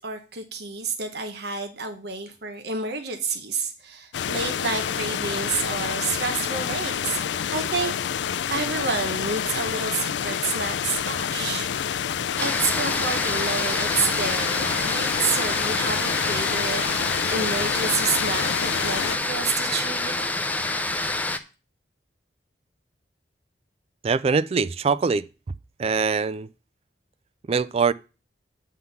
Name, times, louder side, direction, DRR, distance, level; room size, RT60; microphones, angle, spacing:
voice 1, 0.0-7.3 7.5-7.9 8.5-11.7 12.4-20.7, right 4 dB, 65° right, 1.0 m, -29 dB
sound 1, 4.1-19.2, left 8 dB, 80° left, 0.4 m, -28 dB
sound 2, 12.4-21.4, left 2 dB, 10° left, 0.6 m, -27 dB
voice 2, 24.0-25.2 25.8-26.5 27.5-27.9, right 5 dB, 35° right, 0.3 m, -22 dB
9.4 x 3.8 x 7.0 m
head